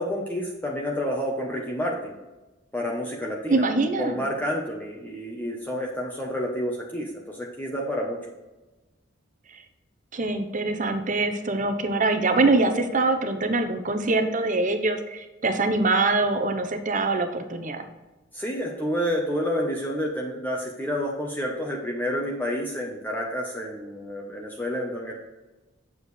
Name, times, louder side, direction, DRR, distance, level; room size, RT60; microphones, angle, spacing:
voice 1, 0.0-2.1 2.7-8.2 18.3-25.1, equal, 10° left, -2 dB, 0.9 m, -29 dB
voice 2, 3.5-4.2 10.1-17.8, right 3 dB, 40° right, 7 dB, 0.9 m, -24 dB
8.8 x 7.2 x 3.3 m, 1.1 s
head